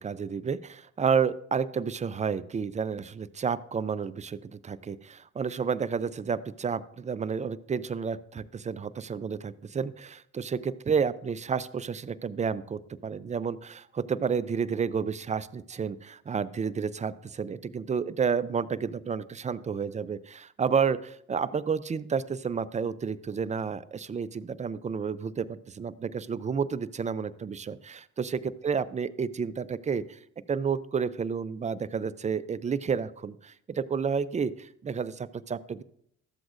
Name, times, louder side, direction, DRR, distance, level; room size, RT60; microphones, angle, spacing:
voice 1, 0.0-30.2 30.5-35.8, right 6 dB, 25° right, 15 dB, 0.4 m, -30 dB
13.0 x 7.8 x 2.5 m, 0.69 s
supercardioid pair, 70°, 31 cm